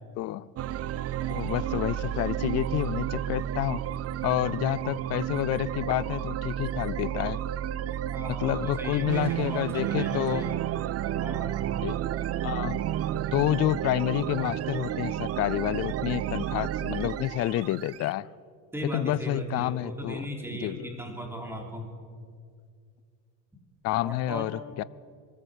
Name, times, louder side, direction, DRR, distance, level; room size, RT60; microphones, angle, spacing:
voice 1, 0.2-0.5 1.3-3.8 4.2-7.4 8.3-10.5 11.8-12.0 12.4-12.8 13.1-18.3 18.9-20.3 20.6-20.8 23.8-24.8, left 15 dB, 40° left, 0.5 m, -29 dB
sound 1, 0.6-18.1, right 11 dB, 35° right, 0.6 m, -31 dB
voice 2, 8.1-10.6 11.2-11.6 18.7-21.9 24.0-24.8, right 1 dB, 5° right, 3.5 m, -37 dB
22.5 x 14.5 x 8.0 m
cardioid pair, 125°, 41 cm